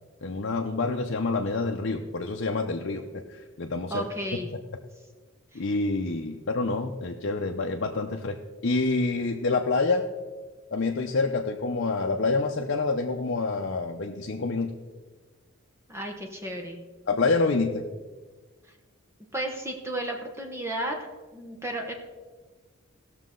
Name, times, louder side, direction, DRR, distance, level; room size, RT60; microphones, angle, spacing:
voice 1, 0.2-4.1 5.5-8.4 8.6-10.0 10.7-14.7 17.1-17.9, left 3 dB, 60° left, 2 dB, 0.7 m, -27 dB
voice 2, 3.9-4.5 5.5-5.6 15.9-16.8 19.3-21.0 21.3-21.9, right 1 dB, 15° right, 1 dB, 1.1 m, -33 dB
18.5 x 6.6 x 3.8 m, 1.4 s
head